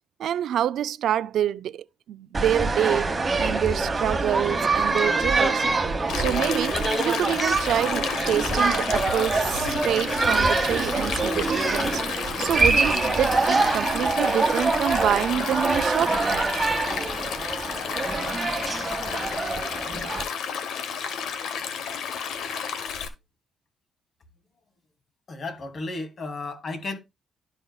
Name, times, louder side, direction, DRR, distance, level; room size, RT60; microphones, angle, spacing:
voice 1, 0.2-3.1 3.4-5.7 6.1-12.0 12.4-16.2, right 10 dB, 70° right, 0.4 m, -27 dB
sound 1, 2.3-20.2, right 3 dB, 25° right, 1.2 m, -25 dB
Stream, 6.1-23.1, left 7 dB, 75° left, 0.9 m, -31 dB
voice 2, 25.3-27.0, left 3 dB, 45° left, 1.8 m, -33 dB
11.5 x 5.5 x 2.3 m
cardioid pair, 90°, 0 cm